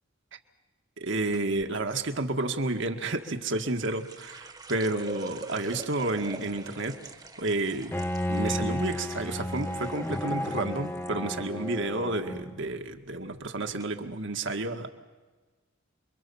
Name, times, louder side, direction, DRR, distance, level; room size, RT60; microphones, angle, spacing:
voice 1, 1.0-7.0 7.4-7.9 8.3-14.9, right 2 dB, 65° right, 5 dB, 1.9 m, -31 dB
sound 1, 1.3-1.7 3.2-11.1 11.4-12.0 12.4-12.7 13.4-13.5 13.8-13.9, right 2 dB, 20° right, 1.4 m, -45 dB
Bowed string instrument, 7.9-12.7, left 1 dB, 10° left, 0.8 m, -33 dB
28.5 x 23.0 x 7.2 m, 1.3 s
head